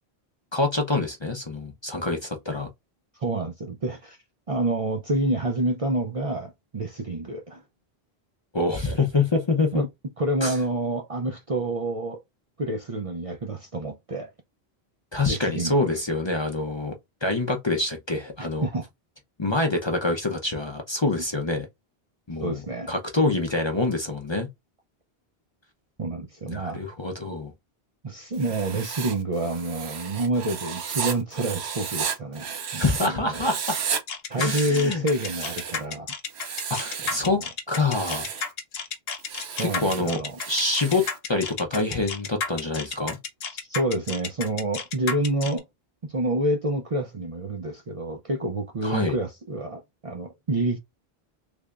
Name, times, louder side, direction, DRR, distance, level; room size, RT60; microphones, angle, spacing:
voice 1, 0.5-2.7 8.5-9.8 10.4-10.6 15.1-16.9 17.2-18.7 19.4-21.7 22.3-22.6 22.9-24.5 26.5-27.5 32.8-33.8 34.4-35.0 36.7-37.4 37.7-38.3 39.8-40.2 40.5-41.0 41.3-43.2 48.8-49.1, left 3 dB, 30° left, 0.6 m, -26 dB
voice 2, 3.2-4.2 4.5-7.6 9.7-9.9 10.2-12.2 12.6-14.3 15.3-16.0 18.4-18.8 22.4-22.9 26.0-26.8 28.0-33.5 34.3-36.1 37.2-37.5 39.6-40.4 43.5-45.6 46.0-50.8, right 2 dB, 40° right, 0.6 m, -28 dB
Writing, 28.3-33.1 33.3-34.0 34.3-35.8 36.3-37.3 37.8-38.5 39.2-41.2, right 6 dB, 85° right, 1.1 m, -33 dB
sound 1, 34.1-45.6, left 5 dB, 70° left, 1.0 m, -32 dB
3.4 x 3.3 x 2.4 m
omnidirectional pair, 1.1 m